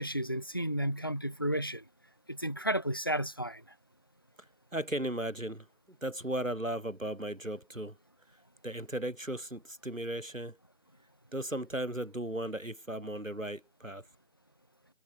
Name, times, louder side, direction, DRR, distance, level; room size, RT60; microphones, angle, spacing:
voice 1, 0.0-1.8 2.3-3.6, equal, 20° left, 1.6 m, -32 dB
voice 2, 4.7-5.7 6.0-8.0 8.6-10.6 11.3-14.0, right 1 dB, 85° right, 6.5 m, -36 dB
figure-of-eight pair, 170°, 38 cm